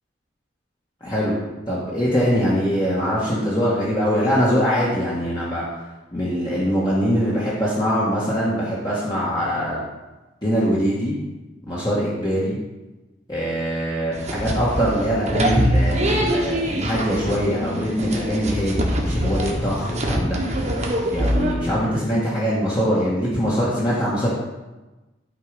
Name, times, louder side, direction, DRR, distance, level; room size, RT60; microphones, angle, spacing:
voice 1, 1.0-1.4 1.7-5.6 6.1-9.8 10.4-11.1 11.7-12.6 13.3-20.4 21.1-24.3, equal, 25° left, -8 dB, 1.7 m, -22 dB
sound 1, 14.1-21.5, equal, 35° right, 1.3 m, -23 dB
12.0 x 4.8 x 5.2 m, 1.1 s
head